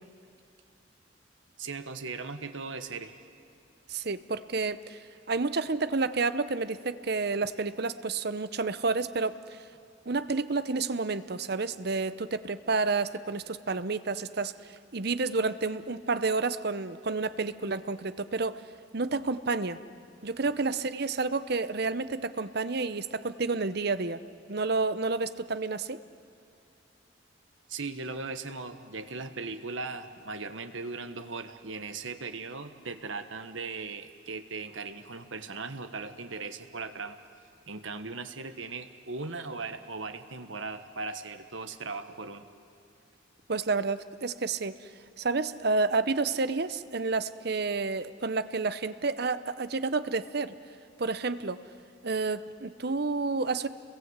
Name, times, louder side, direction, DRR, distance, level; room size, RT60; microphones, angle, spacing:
voice 1, 1.6-3.2 27.7-37.2 37.7-42.4, right 4 dB, 85° right, 8 dB, 1.5 m, -38 dB
voice 2, 3.9-9.6 10.1-18.6 18.9-19.8 20.2-24.2 24.5-26.0 43.5-44.9 45.2-50.6 51.0-51.6 52.0-53.7, right 3 dB, 55° right, 13 dB, 0.8 m, -30 dB
30.0 x 22.0 x 8.2 m, 2.5 s
head